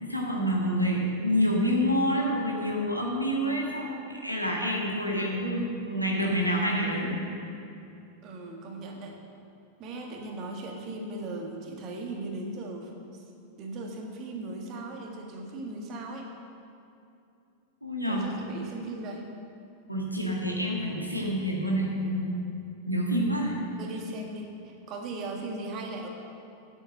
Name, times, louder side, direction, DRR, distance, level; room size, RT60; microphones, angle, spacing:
voice 1, 0.0-7.1 17.8-18.3 19.9-22.3 22.9-23.6, equal, 90° left, -2 dB, 1.8 m, -27 dB
voice 2, 8.2-9.2 9.8-13.2 13.6-16.3 18.1-19.3 23.7-26.1, right 2 dB, 35° right, 2 dB, 1.7 m, -38 dB
9.7 x 8.1 x 6.5 m, 2.6 s
figure-of-eight pair, 90°, 0 cm